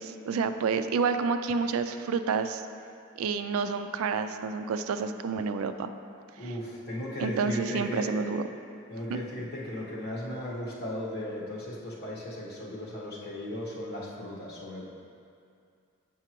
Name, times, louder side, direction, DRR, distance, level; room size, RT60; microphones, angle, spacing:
voice 1, 0.0-2.6 3.2-5.9 6.4-6.5 7.2-8.4 9.1-9.2, right 5 dB, 75° right, 9 dB, 0.3 m, -29 dB
voice 2, 6.4-8.1 8.9-14.8, left 1 dB, 50° left, -5 dB, 1.3 m, -36 dB
7.8 x 5.8 x 3.0 m, 2.4 s
head